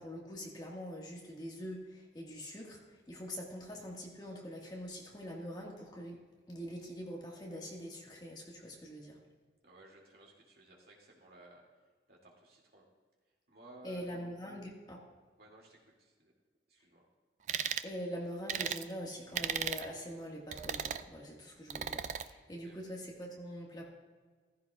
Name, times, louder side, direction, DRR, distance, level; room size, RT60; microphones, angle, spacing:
voice 1, 0.0-6.2 6.5-9.2 13.8-15.0 17.8-23.9, equal, 25° left, -2 dB, 1.7 m, -44 dB
voice 2, 9.6-11.6 12.1-12.9 13.5-14.1 15.4-16.3 16.7-17.1 22.4-22.8, right 2 dB, 55° right, -2 dB, 2.4 m, -58 dB
sound 1, 17.5-17.9 18.5-18.8 19.3-19.9 20.5-21.0 21.7-22.3, right 8 dB, 40° right, 0.4 m, -36 dB
15.0 x 15.0 x 2.4 m, 1.5 s
head